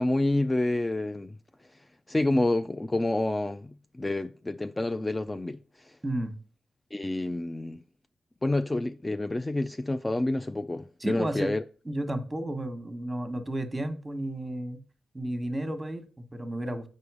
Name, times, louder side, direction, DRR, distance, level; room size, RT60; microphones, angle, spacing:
voice 1, 0.0-1.3 2.1-6.0 6.9-7.8 8.4-11.6, left 2 dB, 20° left, 0.4 m, -28 dB
voice 2, 6.0-6.3 11.0-11.5 11.8-14.8 15.1-16.9, right 1 dB, 15° right, 1.3 m, -32 dB
6.8 x 5.4 x 4.8 m
supercardioid pair, 55°, 0 cm